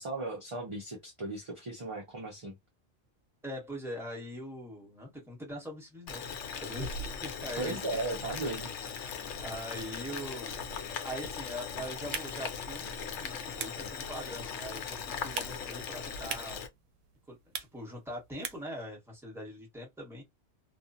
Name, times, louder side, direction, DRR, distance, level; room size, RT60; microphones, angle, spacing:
voice 1, 0.0-2.6 7.6-8.7, right 2 dB, 30° right, 0.7 m, -36 dB
voice 2, 3.4-6.2 6.6-8.0 9.4-10.6 11.0-12.9 13.2-16.6 17.3-17.4 17.7-20.2, equal, ahead, 1.2 m, -42 dB
Boiling, 6.1-16.7, left 6 dB, 70° left, 0.9 m, -39 dB
sound 1, 16.6-18.8, right 8 dB, 85° right, 0.9 m, -45 dB
2.5 x 2.3 x 2.5 m
omnidirectional pair, 1.3 m